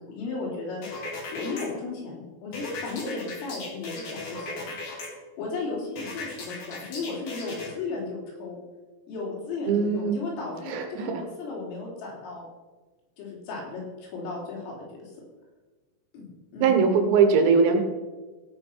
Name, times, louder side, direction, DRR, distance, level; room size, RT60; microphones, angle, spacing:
voice 1, 0.1-4.7 5.4-8.6 9.1-12.5 13.2-15.1 16.1-16.8, left 3 dB, 75° left, -3 dB, 5.8 m, -35 dB
sound 1, 0.8-1.6 2.5-5.1 6.0-7.7, left 3 dB, 50° left, 3.6 m, -37 dB
voice 2, 9.7-10.2 10.7-11.2 16.6-17.8, right 5 dB, 80° right, 5 dB, 4.0 m, -21 dB
17.0 x 6.2 x 5.8 m, 1.3 s
omnidirectional pair, 6.0 m